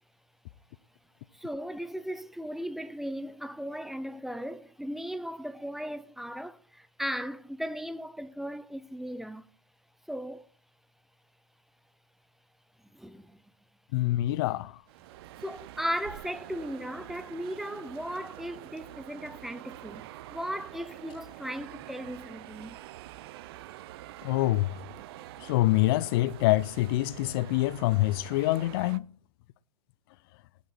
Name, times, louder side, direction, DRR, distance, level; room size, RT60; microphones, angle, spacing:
voice 1, 1.3-9.5 10.1-10.5 12.9-13.4 14.0-14.3 15.4-22.8, equal, ahead, 0.7 m, -37 dB
voice 2, 13.9-14.7 24.2-24.7 25.4-29.1, left 17 dB, 40° left, 0.7 m, -25 dB
sound 1, 14.9-29.0, right 15 dB, 45° right, 0.6 m, -46 dB
19.0 x 8.5 x 4.4 m
figure-of-eight pair, 110°, 18 cm